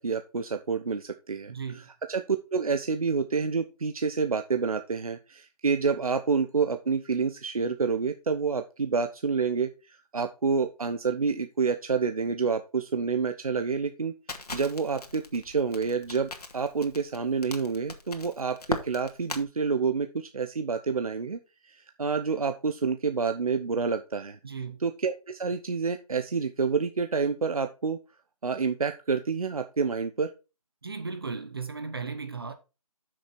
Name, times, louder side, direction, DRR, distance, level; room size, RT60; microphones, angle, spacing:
voice 1, 0.0-1.5 2.1-14.1 14.5-24.4 24.8-28.0 28.4-30.3, right 5 dB, 65° right, 0.9 m, -28 dB
voice 2, 1.5-1.9 24.4-24.8 30.8-32.5, right 5 dB, 40° right, 0.9 m, -36 dB
Crackle, 14.3-19.4, left 3 dB, 75° left, 2.0 m, -38 dB
8.1 x 6.5 x 4.3 m
figure-of-eight pair, 170°, 20 cm